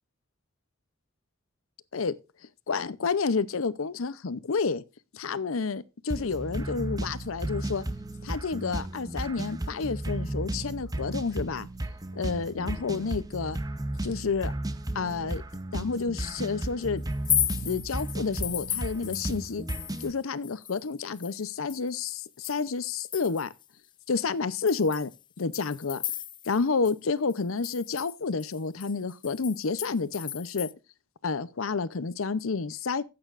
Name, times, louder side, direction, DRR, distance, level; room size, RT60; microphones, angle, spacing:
voice 1, 2.7-4.8 5.1-7.8 8.3-11.7 12.2-13.6 14.0-14.5 14.9-15.4 15.7-17.0 17.6-19.7 20.0-23.5 24.1-25.1 25.4-26.0 26.5-30.7 31.2-33.0, left 4 dB, 75° left, 0.7 m, -30 dB
sound 1, 6.1-20.1, right 1 dB, 20° right, 0.8 m, -34 dB
sound 2, 17.1-20.2 20.4-23.6 24.1-24.2 24.7-26.6 26.9-27.0 27.3-30.7, left 10 dB, 20° left, 0.4 m, -35 dB
14.5 x 8.7 x 2.5 m
head